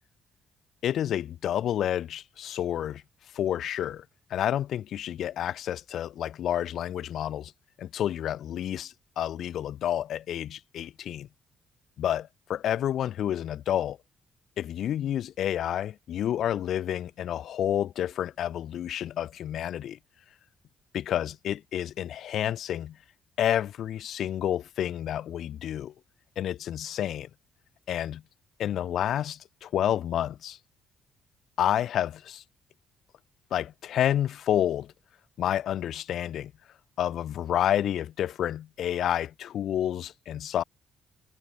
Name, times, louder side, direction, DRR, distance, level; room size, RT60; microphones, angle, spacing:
voice 1, 0.8-3.0 3.3-4.0 4.3-7.5 7.8-11.3 12.0-14.0 14.6-20.0 20.9-23.0 23.4-25.9 26.4-27.3 27.9-28.2 28.6-30.6 31.6-32.4 33.5-34.9 35.4-36.5 37.0-40.6, left 11 dB, 70° left, 0.7 m, -29 dB
cardioid pair, 90°, 0 cm